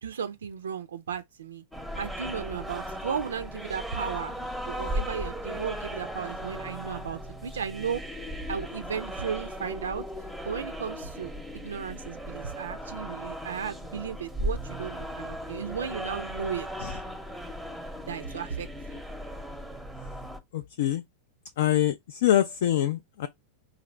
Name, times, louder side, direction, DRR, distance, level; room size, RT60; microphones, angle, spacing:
voice 1, 0.0-1.6 2.0-8.0 8.5-10.0 10.4-16.7 18.1-19.0, right 7 dB, 65° right, 0.3 m, -35 dB
sound 1, 1.7-20.4, equal, ahead, 0.7 m, -37 dB
voice 2, 20.5-21.0 21.6-23.3, left 12 dB, 55° left, 0.3 m, -25 dB
4.0 x 2.5 x 3.1 m
figure-of-eight pair, 90°, 0 cm